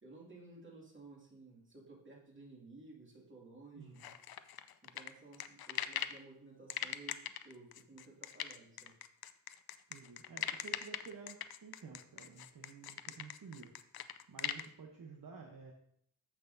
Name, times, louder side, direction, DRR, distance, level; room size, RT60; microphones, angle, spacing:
voice 1, 0.0-4.0 4.8-9.0, right 3 dB, 30° right, -3 dB, 2.3 m, -55 dB
voice 2, 3.8-4.1 9.9-13.8 14.3-15.7, right 5 dB, 50° right, 0 dB, 1.0 m, -52 dB
sound 1, 4.0-6.2 6.7-14.7, left 10 dB, 60° left, 0.5 m, -41 dB
14.0 x 5.9 x 2.7 m, 0.67 s
wide cardioid pair, 145°, 42 cm